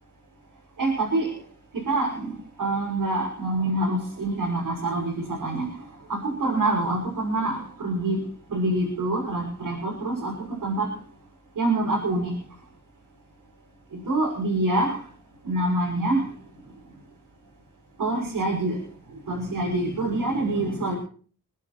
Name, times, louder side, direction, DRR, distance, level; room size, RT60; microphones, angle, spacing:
voice 1, 0.8-1.3 1.9-5.7 6.1-8.2 8.5-10.3 10.6-10.9 11.6-12.3 13.9-15.0 15.4-16.2 18.0-18.8 19.3-21.0, right 2 dB, 85° right, -3 dB, 6.8 m, -26 dB
25.5 x 11.0 x 4.5 m, 0.43 s
cardioid pair, 50°, 32 cm